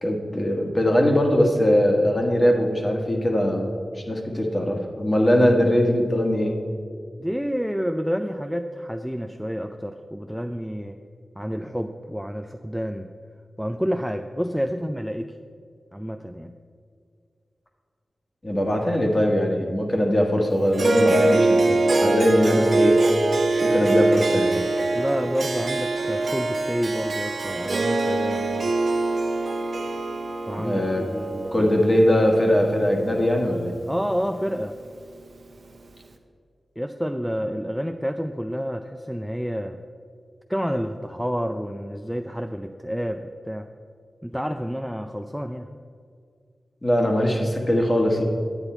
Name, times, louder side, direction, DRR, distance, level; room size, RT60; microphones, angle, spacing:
voice 1, 0.0-3.7 3.9-6.5 18.4-23.0 23.6-24.6 30.5-31.1 31.5-33.7 46.8-48.2, equal, 30° left, 1 dB, 1.6 m, -21 dB
voice 2, 7.2-11.0 11.4-13.1 13.6-15.4 15.9-16.5 24.9-28.7 30.5-31.7 33.9-34.8 36.8-39.8 40.5-43.7 44.2-45.7, equal, ahead, 6 dB, 0.4 m, -29 dB
Harp, 20.7-33.3, right 2 dB, 60° right, 0.8 m, -23 dB
9.8 x 8.9 x 4.4 m, 2.2 s
wide cardioid pair, 85°, 0 cm